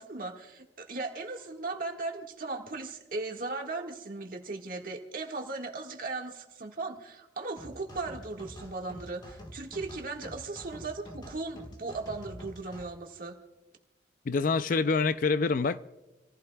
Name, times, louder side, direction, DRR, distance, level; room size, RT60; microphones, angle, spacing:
voice 1, 0.0-13.3, right 3 dB, 50° right, 1.7 m, -37 dB
sound 1, 7.6-12.9, equal, 25° left, 1.6 m, -47 dB
voice 2, 14.3-15.8, left 4 dB, 50° left, 0.4 m, -26 dB
27.5 x 15.0 x 2.3 m
head